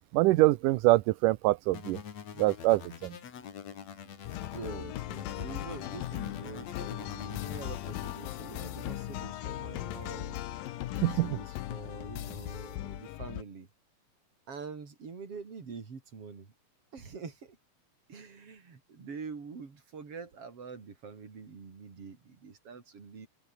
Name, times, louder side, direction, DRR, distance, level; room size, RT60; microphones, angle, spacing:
voice 1, 0.1-2.0 2.4-3.2 11.0-11.4, right 18 dB, 75° right, 2.1 m, -24 dB
sound 1, 1.7-4.7 5.2-8.2, left 8 dB, 55° left, 3.2 m, -45 dB
sound 2, 4.2-13.4, left 14 dB, 75° left, 2.8 m, -38 dB
voice 2, 4.5-10.4 10.9-13.7 14.5-16.5 16.9-17.6 18.1-23.3, right 5 dB, 40° right, 4.6 m, -45 dB
open air
omnidirectional pair, 4.2 m